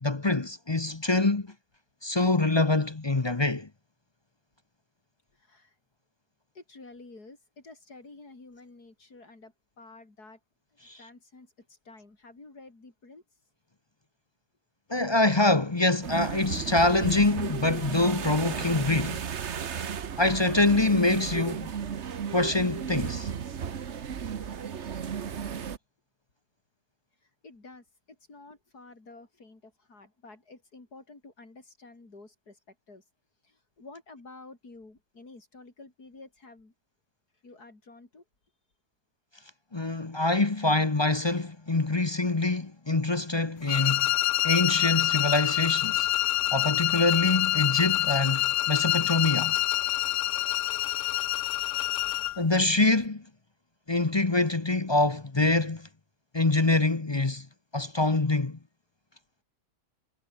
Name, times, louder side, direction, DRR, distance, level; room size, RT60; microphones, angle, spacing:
voice 1, 0.0-1.5 2.0-3.7 10.8-11.0 14.9-19.2 20.2-21.7 22.3-23.3 39.7-44.1 44.4-46.1 46.5-49.6 52.4-53.2 53.9-55.9 56.3-57.5 57.7-58.6, left 2 dB, 20° left, 0.7 m, -25 dB
voice 2, 5.3-5.8 6.5-10.4 10.9-13.2 23.7-23.8 27.2-33.0 33.4-36.7 37.4-38.2, left 3 dB, 70° left, 5.5 m, -51 dB
sound 1, 16.0-25.8, right 7 dB, 45° right, 1.3 m, -34 dB
sound 2, 43.7-52.4, left 14 dB, 85° left, 1.3 m, -26 dB
omnidirectional pair, 1.8 m